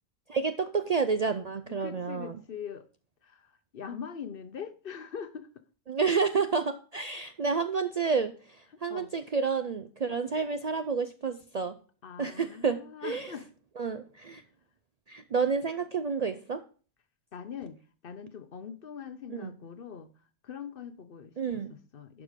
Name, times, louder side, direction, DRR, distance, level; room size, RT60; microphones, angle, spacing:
voice 1, 0.3-2.4 5.9-11.8 12.2-13.3 13.8-14.4 15.1-16.6 19.3-19.5 21.4-21.7, right 5 dB, 50° right, 0.5 m, -30 dB
voice 2, 1.8-2.9 3.2-5.6 8.7-9.1 12.0-13.5 17.3-20.1 20.4-22.2, left 7 dB, 55° left, 0.9 m, -42 dB
11.5 x 4.9 x 5.1 m
omnidirectional pair, 1.2 m